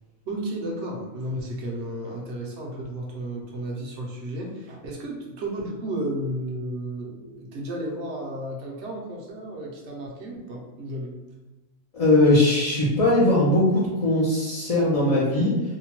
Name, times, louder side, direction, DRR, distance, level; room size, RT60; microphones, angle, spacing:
voice 1, 0.3-11.1, right 1 dB, 65° right, -1 dB, 0.9 m, -33 dB
voice 2, 11.9-15.6, left 1 dB, 45° left, -8 dB, 0.5 m, -20 dB
2.8 x 2.2 x 2.9 m, 1.1 s
omnidirectional pair, 1.3 m